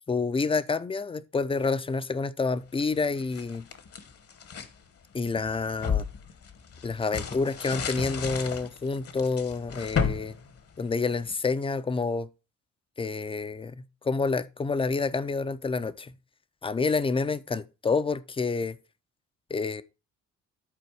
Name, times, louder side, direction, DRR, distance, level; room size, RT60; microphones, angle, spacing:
voice 1, 0.1-3.6 5.1-6.0 6.8-10.4 10.8-12.3 13.0-16.1 16.6-18.8 19.5-19.8, left 4 dB, 20° left, 0.5 m, -28 dB
sound 1, 2.8-4.7 5.3-11.3, left 6 dB, 50° left, 1.2 m, -34 dB
10.5 x 4.2 x 4.7 m
cardioid pair, 90°, 30 cm